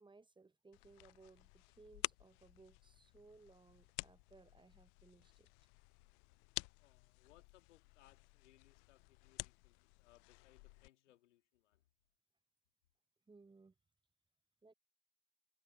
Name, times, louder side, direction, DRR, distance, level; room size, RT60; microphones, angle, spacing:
voice 1, 0.0-5.5 13.3-13.7 14.6-14.7, right 3 dB, 15° right, 0.9 m, -63 dB
sound 1, 0.7-10.9, left 33 dB, 60° left, 0.5 m, -51 dB
voice 2, 6.3-11.8, left 14 dB, 80° left, 2.1 m, -70 dB
hypercardioid pair, 80°, 35 cm